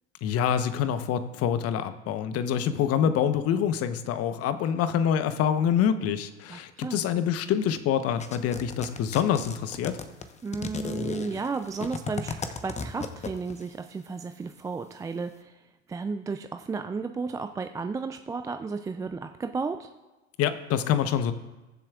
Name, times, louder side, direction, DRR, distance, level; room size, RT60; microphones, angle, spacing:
voice 1, 0.2-10.0 20.4-21.3, left 8 dB, 40° left, 11 dB, 1.0 m, -26 dB
voice 2, 6.5-7.0 10.4-15.6 15.9-19.9, right 4 dB, 10° right, 7 dB, 0.3 m, -33 dB
sound 1, 8.2-13.7, left 4 dB, 20° left, 1.0 m, -35 dB
21.5 x 7.4 x 2.4 m, 1.1 s
hypercardioid pair, 80°, 36 cm